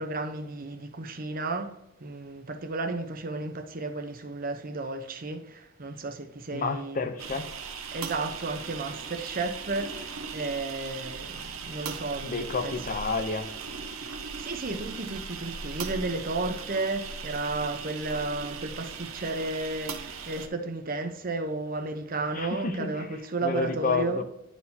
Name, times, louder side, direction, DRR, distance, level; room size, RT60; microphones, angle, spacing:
voice 1, 0.0-1.7 2.0-7.1 7.9-12.7 14.4-24.2, right 3 dB, 45° right, 0.8 m, -33 dB
voice 2, 6.5-7.5 12.2-13.5 22.3-23.1 23.4-24.2, left 4 dB, 40° left, 0.6 m, -30 dB
sound 1, 7.2-20.5, right 5 dB, 85° right, 0.9 m, -38 dB
11.0 x 4.4 x 2.8 m
head